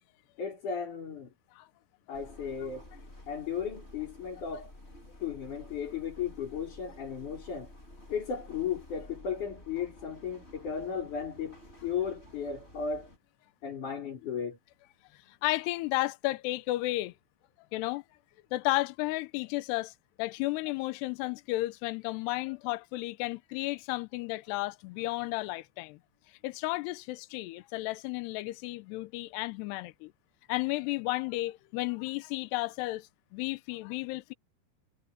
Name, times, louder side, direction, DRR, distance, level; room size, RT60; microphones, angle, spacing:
voice 1, 0.4-1.3 2.1-2.9 3.3-4.7 5.2-7.7 8.1-11.6 11.8-13.1 13.6-14.6, left 7 dB, 40° left, 6.0 m, -35 dB
sound 1, 2.1-13.2, left 1 dB, 15° left, 4.0 m, -52 dB
voice 2, 15.4-17.1 17.7-18.0 18.5-26.0 26.4-30.1 30.5-34.3, left 19 dB, 85° left, 2.4 m, -33 dB
omnidirectional pair, 5.6 m